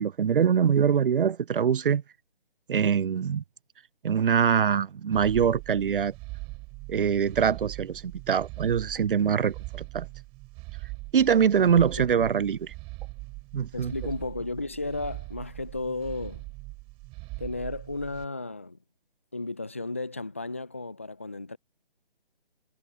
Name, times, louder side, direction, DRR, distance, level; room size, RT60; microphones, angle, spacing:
voice 1, 0.0-2.0 2.7-3.4 4.0-6.1 6.9-10.1 11.1-12.7 13.5-13.9, right 7 dB, 65° right, 0.5 m, -24 dB
sound 1, 5.1-18.2, right 25 dB, 20° right, 5.3 m, -41 dB
voice 2, 11.7-12.1 13.7-16.5 17.4-18.8 19.3-21.6, left 2 dB, 15° left, 0.4 m, -34 dB
figure-of-eight pair, 145°, 30 cm